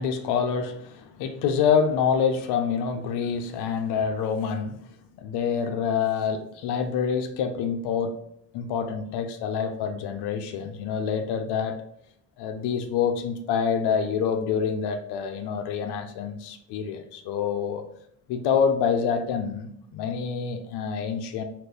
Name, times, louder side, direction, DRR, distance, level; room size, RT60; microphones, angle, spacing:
voice 1, 0.0-4.9 5.2-8.2 8.5-11.8 12.4-17.8 18.3-21.4, left 6 dB, 75° left, 0.6 m, -26 dB
2.9 x 2.4 x 3.5 m
supercardioid pair, 50°, 41 cm